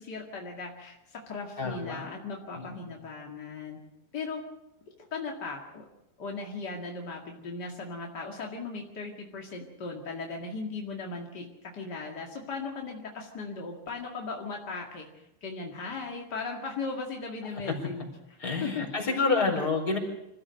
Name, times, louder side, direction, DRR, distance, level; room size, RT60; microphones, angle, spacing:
voice 1, 0.0-3.8 4.1-4.4 5.1-5.8 6.2-15.1 15.4-18.1 18.6-18.8, left 4 dB, 40° left, 0 dB, 1.5 m, -37 dB
voice 2, 1.6-2.1 2.5-2.8 17.5-17.7 18.4-20.0, left 4 dB, 20° left, 0 dB, 4.9 m, -28 dB
26.5 x 15.5 x 6.5 m, 0.90 s
omnidirectional pair, 5.2 m